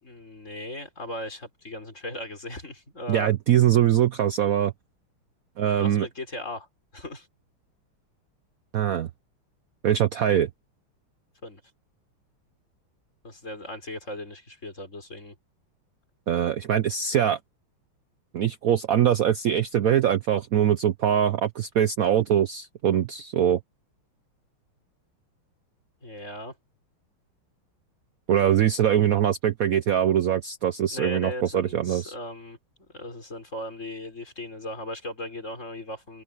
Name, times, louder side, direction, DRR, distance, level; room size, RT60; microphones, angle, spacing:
voice 1, 0.0-3.3 5.7-6.7 6.9-7.3 11.4-11.6 13.2-15.4 26.0-26.6 30.9-36.2, left 1 dB, 35° left, 5.6 m, -37 dB
voice 2, 3.1-4.7 5.6-6.1 8.7-9.1 9.8-10.5 16.3-17.4 18.3-23.6 28.3-32.1, right 10 dB, 75° right, 0.8 m, -22 dB
omnidirectional pair, 2.4 m